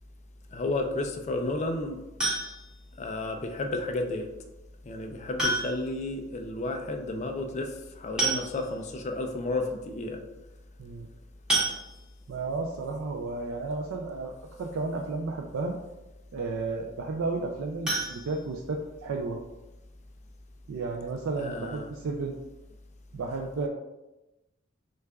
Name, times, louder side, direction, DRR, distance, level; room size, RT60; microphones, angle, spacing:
voice 1, 0.5-2.0 3.0-4.3 4.9-10.2 21.4-21.9, left 2 dB, 35° left, 4 dB, 0.4 m, -32 dB
sound 1, 2.2-2.8 4.3-4.4 5.4-6.0 6.3-6.4 6.7-6.8 7.8-7.9 8.2-8.9 9.5-9.6 9.9-10.1 11.5-12.3 17.8-19.0 19.4-19.5 19.9-20.0 20.4-20.5, right 2 dB, 5° right, 1.2 m, -30 dB
voice 2, 12.3-14.3 14.6-15.8 16.3-19.4 20.7-22.4 23.1-23.7, right 3 dB, 85° right, 1 dB, 0.4 m, -32 dB
6.2 x 2.4 x 2.3 m, 1.0 s
head